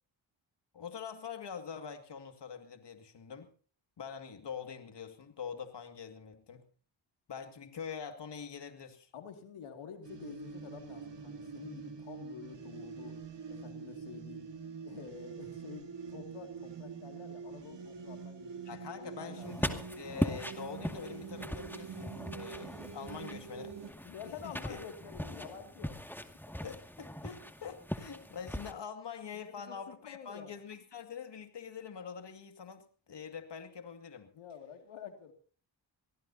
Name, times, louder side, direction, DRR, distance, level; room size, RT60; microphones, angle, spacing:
voice 1, 0.7-3.5 4.0-6.7 7.3-9.1 18.7-23.8 24.4-24.8 26.6-34.3, left 6 dB, 60° left, 6 dB, 2.3 m, -45 dB
voice 2, 9.1-13.2 13.5-14.5 14.8-19.6 24.0-26.0 29.3-30.5 34.3-35.3, left 7 dB, 90° left, 5 dB, 2.5 m, -48 dB
sound 1, 10.0-23.9, right 6 dB, 60° right, 3.0 m, -45 dB
sound 2, 19.4-28.7, left 1 dB, 5° left, 2.2 m, -40 dB
24.5 x 17.5 x 2.8 m, 0.41 s
cardioid pair, 55°, 48 cm